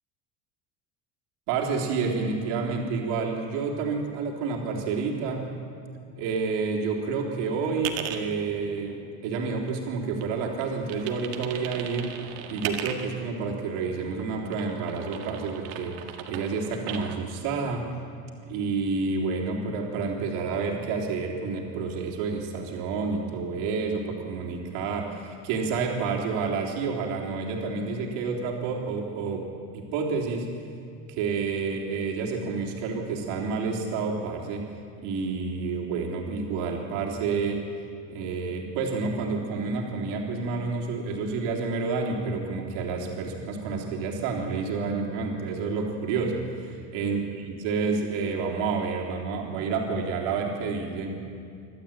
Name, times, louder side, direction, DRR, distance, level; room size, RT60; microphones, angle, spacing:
voice 1, 1.5-5.5 6.2-9.0 9.2-12.1 12.5-16.0 16.3-17.8 18.5-29.5 29.9-30.5 31.1-34.7 35.0-37.6 38.1-51.2, right 4 dB, 85° right, 0 dB, 3.6 m, -29 dB
sound 1, 7.8-8.2 8.8-9.9 10.2-13.2 14.0-17.2, right 9 dB, 65° right, 1.9 m, -37 dB
26.0 x 12.5 x 8.9 m, 2.4 s
cardioid pair, 175°, 41 cm